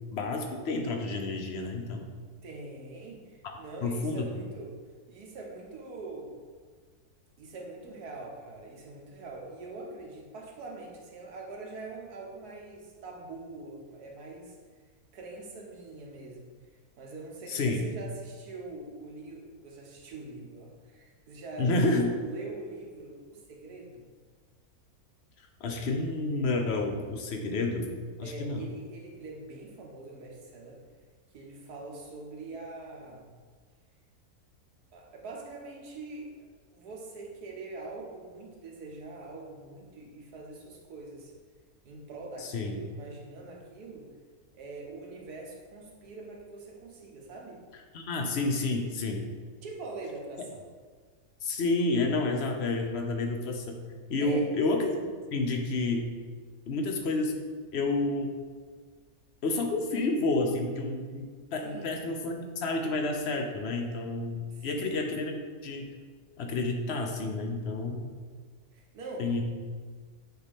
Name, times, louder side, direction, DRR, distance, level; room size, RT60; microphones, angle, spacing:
voice 1, 0.1-2.0 3.8-4.3 17.5-17.8 21.6-22.1 25.6-27.9 28.2-28.6 42.4-42.8 47.9-49.3 51.4-53.8 54.1-56.1 56.7-57.4 57.7-58.3 59.4-61.3 61.5-65.9 66.4-68.1 69.2-69.4, left 2 dB, 55° left, 3 dB, 0.8 m, -30 dB
voice 2, 2.4-4.8 5.1-6.4 7.4-14.5 15.1-16.5 17.0-24.1 28.2-30.8 31.3-33.3 34.9-36.3 36.7-41.3 41.8-44.1 44.5-47.6 49.6-50.6 54.2-54.5 61.6-62.0 64.5-65.0 68.7-69.4, right 3 dB, 85° right, -1 dB, 1.6 m, -43 dB
8.0 x 4.1 x 3.5 m, 1.5 s
omnidirectional pair, 1.6 m